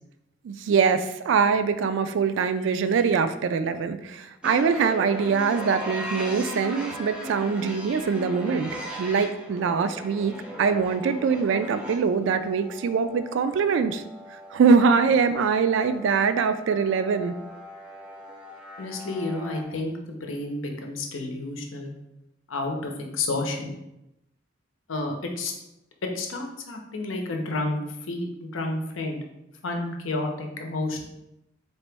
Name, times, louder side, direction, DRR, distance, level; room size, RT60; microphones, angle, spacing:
voice 1, 0.4-8.7 9.0-10.3 10.6-14.0 14.3-17.3, right 5 dB, 65° right, 10 dB, 0.3 m, -23 dB
sound 1, 4.4-19.6, equal, 5° right, 0.5 m, -39 dB
voice 2, 18.8-21.9 22.5-23.8 24.9-25.5 26.1-27.8 28.1-29.2 29.6-31.1, left 2 dB, 90° left, 2 dB, 0.7 m, -30 dB
4.1 x 2.9 x 3.4 m, 0.88 s
head